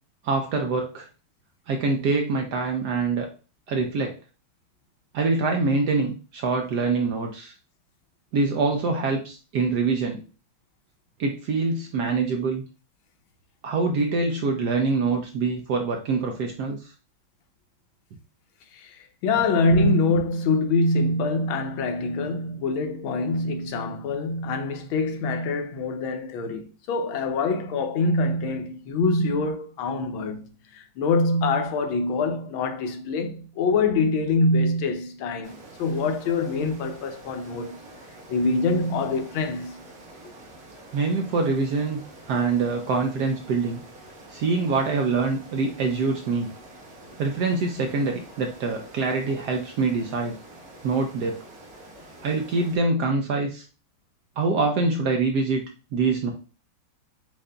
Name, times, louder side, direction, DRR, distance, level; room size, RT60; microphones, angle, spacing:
voice 1, 0.2-1.1 1.7-3.3 3.7-4.2 5.1-7.5 8.3-10.2 11.2-12.6 13.6-16.9 40.9-42.0 42.3-43.8 44.3-46.5 47.2-50.4 50.8-51.4 52.2-53.6 54.4-55.6 55.9-56.3, right 4 dB, 70° right, 1.0 m, -25 dB
voice 2, 18.7-35.5 35.8-37.7 38.3-39.8, left 3 dB, 80° left, 1.5 m, -25 dB
sound 1, 35.4-52.8, right 1 dB, 50° right, 1.5 m, -47 dB
7.6 x 2.6 x 2.2 m
omnidirectional pair, 2.2 m